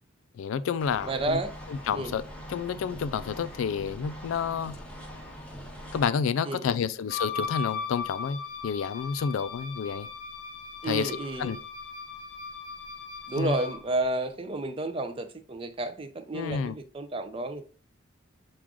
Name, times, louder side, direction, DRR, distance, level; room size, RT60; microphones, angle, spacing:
voice 1, 0.3-1.4 1.7-4.8 5.9-10.1 10.8-11.6 13.4-13.6 16.3-16.8, left 6 dB, 75° left, 0.3 m, -30 dB
sound 1, 0.8-6.0, equal, 5° left, 0.7 m, -43 dB
voice 2, 1.0-1.5 1.9-2.1 6.4-6.9 10.8-11.6 13.3-17.7, right 2 dB, 25° right, 0.4 m, -31 dB
Wind instrument woodwind instrument, 7.1-13.9, left 5 dB, 45° left, 0.7 m, -38 dB
6.0 x 2.4 x 3.6 m
head